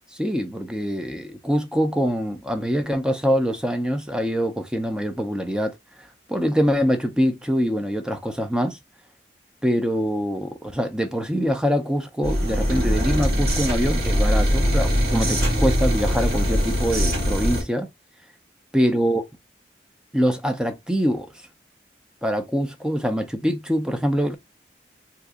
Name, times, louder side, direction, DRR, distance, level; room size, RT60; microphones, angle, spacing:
voice 1, 0.1-5.8 6.3-8.8 9.6-17.9 18.7-19.2 20.1-21.3 22.2-24.4, equal, 5° right, 0.4 m, -24 dB
sound 1, 12.2-17.6, equal, 55° right, 1.5 m, -21 dB
2.8 x 2.5 x 3.4 m
head